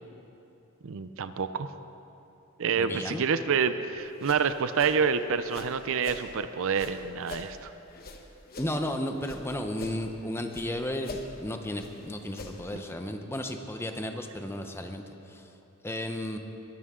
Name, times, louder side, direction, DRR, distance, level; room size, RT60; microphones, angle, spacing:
voice 1, 0.8-1.7 2.6-7.7, right 6 dB, 65° right, 11 dB, 0.5 m, -28 dB
voice 2, 2.8-3.2 8.6-15.0 15.3-15.4 15.8-16.4, left 1 dB, 10° left, 5 dB, 0.8 m, -33 dB
sound 1, 4.0-6.3 6.7-9.4 9.7-10.7 11.0-12.8, left 3 dB, 45° left, 1.1 m, -44 dB
22.5 x 11.5 x 3.7 m, 2.8 s
head